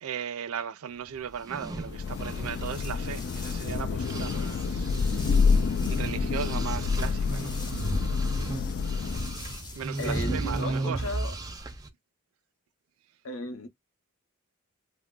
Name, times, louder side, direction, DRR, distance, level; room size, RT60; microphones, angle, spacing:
voice 1, 0.0-5.3 5.9-7.6 9.7-11.0, right 7 dB, 80° right, 0.4 m, -37 dB
sound 1, 1.3-3.7 4.0-11.9, right 2 dB, 15° right, 0.4 m, -35 dB
Thunder / Rain, 1.6-9.7, left 5 dB, 50° left, 0.3 m, -28 dB
sound 2, 2.3-10.6, left 1 dB, 20° left, 0.6 m, -44 dB
voice 2, 10.0-11.4 13.2-13.7, left 2 dB, 70° left, 0.7 m, -35 dB
2.3 x 2.0 x 3.6 m
head